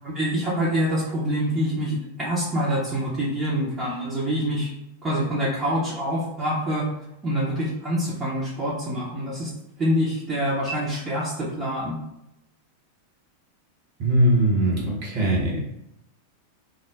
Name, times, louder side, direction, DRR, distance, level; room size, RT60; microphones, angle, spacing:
voice 1, 0.0-4.7 5.0-6.9 7.2-9.5 9.8-12.0, equal, 20° right, -8 dB, 0.8 m, -26 dB
voice 2, 14.0-15.6, right 1 dB, 45° right, -3 dB, 1.0 m, -21 dB
2.4 x 2.0 x 3.3 m, 0.83 s
figure-of-eight pair, 90°, 0 cm